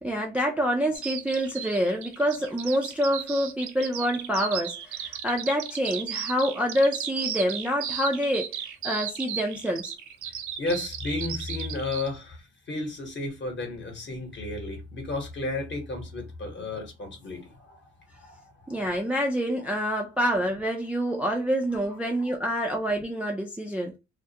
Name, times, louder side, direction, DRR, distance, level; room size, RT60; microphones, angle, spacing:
voice 1, 0.0-8.6 8.8-9.9 18.7-24.0, equal, 5° right, 0.4 m, -27 dB
Bird vocalization bird call bird song, 0.9-12.1, right 9 dB, 75° right, 0.5 m, -35 dB
voice 2, 10.6-18.9 21.7-21.8, left 2 dB, 40° left, 1.0 m, -33 dB
2.3 x 2.1 x 2.7 m
cardioid pair, 90°, 30 cm